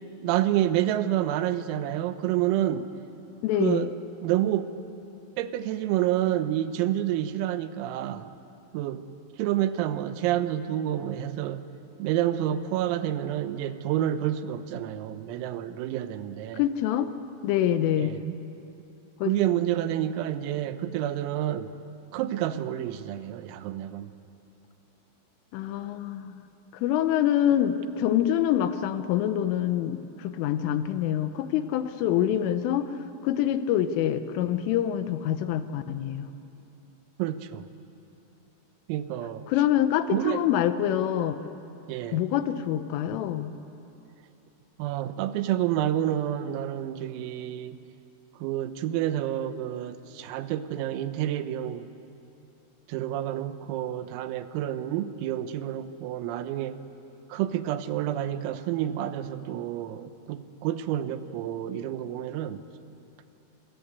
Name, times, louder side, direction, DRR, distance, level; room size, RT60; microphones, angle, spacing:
voice 1, 0.2-2.9 3.6-3.9 4.2-4.7 5.4-8.3 8.7-9.0 9.4-11.7 12.0-16.7 18.0-18.4 19.2-21.7 22.1-24.1 37.2-37.7 38.9-39.5 40.1-40.4 41.9-42.2 44.8-47.8 48.4-51.9 52.9-56.8 57.3-62.6, right 12 dB, 85° right, 11 dB, 3.7 m, -29 dB
voice 2, 3.4-3.9 16.5-17.1 17.4-18.2 19.2-19.3 25.5-26.4 26.7-32.9 33.2-36.3 39.5-41.4 42.1-43.5, left 11 dB, 80° left, 10 dB, 3.3 m, -26 dB
26.5 x 25.5 x 8.2 m, 2.8 s
omnidirectional pair, 6.0 m